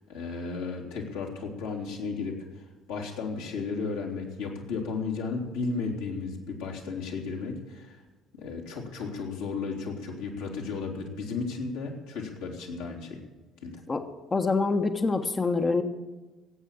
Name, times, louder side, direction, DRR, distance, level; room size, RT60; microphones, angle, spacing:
voice 1, 0.1-8.0 8.4-13.2 13.6-13.8, left 4 dB, 70° left, -2 dB, 3.2 m, -34 dB
voice 2, 14.3-15.8, left 3 dB, 25° left, 7 dB, 1.2 m, -25 dB
17.5 x 8.6 x 7.4 m, 1.2 s
figure-of-eight pair, 55°, 0 cm